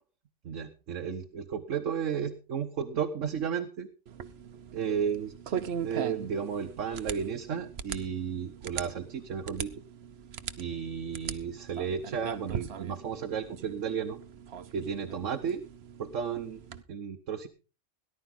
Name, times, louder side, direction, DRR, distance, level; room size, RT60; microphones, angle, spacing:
voice 1, 0.4-3.9 4.7-9.7 10.6-14.2 14.7-15.6 16.0-16.6 16.9-17.5, right 7 dB, 85° right, 5 dB, 1.4 m, -33 dB
sound 1, 4.1-16.8, right 7 dB, 60° right, 1.0 m, -41 dB
18.5 x 11.0 x 3.9 m, 0.33 s
omnidirectional pair, 1.3 m